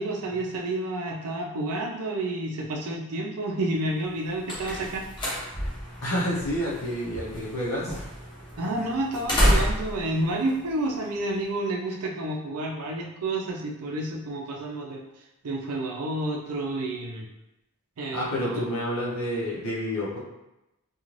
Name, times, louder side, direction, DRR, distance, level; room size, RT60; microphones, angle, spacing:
voice 1, 0.0-5.0 8.6-15.0 15.4-17.2 18.0-18.6, right 2 dB, 90° right, 0 dB, 0.5 m, -30 dB
sound 1, 4.0-11.4, equal, 20° left, 0.6 m, -30 dB
voice 2, 6.0-8.0 18.1-20.2, equal, 70° left, -5 dB, 0.7 m, -29 dB
2.5 x 2.3 x 3.1 m, 0.92 s
head